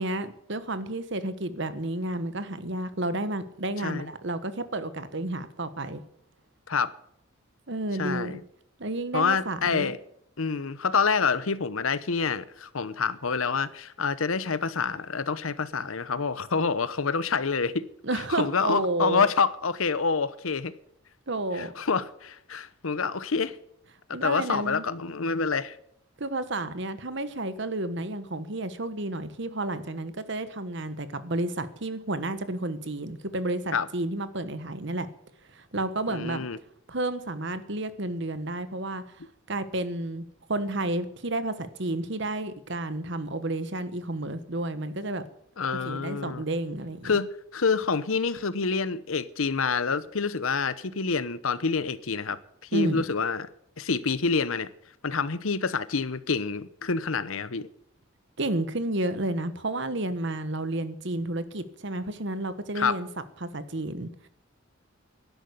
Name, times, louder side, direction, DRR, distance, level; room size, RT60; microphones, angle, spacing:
voice 1, 0.0-6.0 7.7-8.4 8.8-9.9 18.0-19.3 21.3-21.7 24.1-24.8 26.2-35.1 35.5-36.5 36.9-39.0 39.5-45.2 45.8-47.1 52.7-53.0 58.4-63.1 63.4-64.3, right 2 dB, 55° right, 1.3 m, -31 dB
voice 2, 3.8-4.1 6.7-6.9 8.0-8.4 9.1-10.0 10.4-17.8 18.3-20.7 21.5-23.6 24.2-25.8 33.7-33.9 36.1-36.6 45.6-46.4 47.0-52.4 52.7-53.5 53.8-54.7 55.0-57.7 62.7-63.0, left 5 dB, 80° left, 0.9 m, -27 dB
11.5 x 11.0 x 8.4 m
head